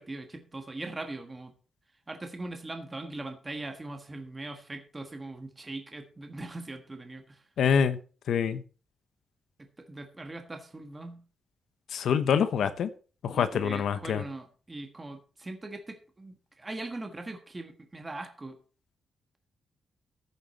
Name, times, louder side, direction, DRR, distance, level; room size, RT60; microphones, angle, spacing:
voice 1, 0.0-1.5 2.1-7.4 9.8-11.2 13.3-18.6, right 2 dB, 15° right, 5 dB, 1.4 m, -40 dB
voice 2, 7.6-8.0 8.3-8.6 11.9-12.9 13.2-14.2, left 7 dB, 75° left, 11 dB, 1.1 m, -25 dB
14.0 x 7.5 x 4.2 m, 0.36 s
wide cardioid pair, 155°, 0 cm